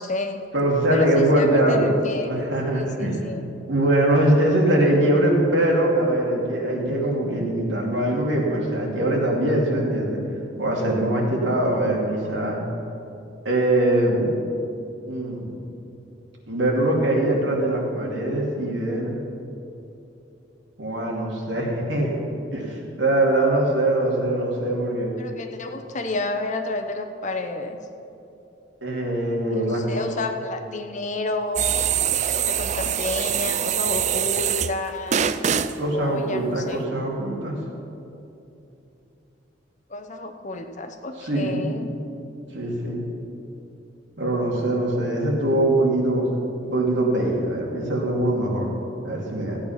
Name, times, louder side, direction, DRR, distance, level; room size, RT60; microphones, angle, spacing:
voice 1, 0.0-0.4 0.9-3.4 25.2-27.8 29.5-31.8 32.3-35.2 35.9-36.8 39.9-42.0, left 2 dB, 40° left, 6 dB, 0.9 m, -31 dB
voice 2, 0.5-1.9 2.2-3.2 3.7-10.2 10.6-12.6 13.4-14.3 15.1-15.5 16.5-19.2 20.8-22.1 22.5-25.1 28.8-30.0 35.8-37.6 41.2-41.7 42.5-43.1 44.2-46.3 46.6-48.7 49.0-49.6, right 1 dB, 80° right, -2 dB, 2.7 m, -22 dB
sound 1, 31.6-34.8 35.1-35.7, right 8 dB, 40° right, 0.4 m, -23 dB
15.0 x 8.8 x 5.8 m, 2.8 s
head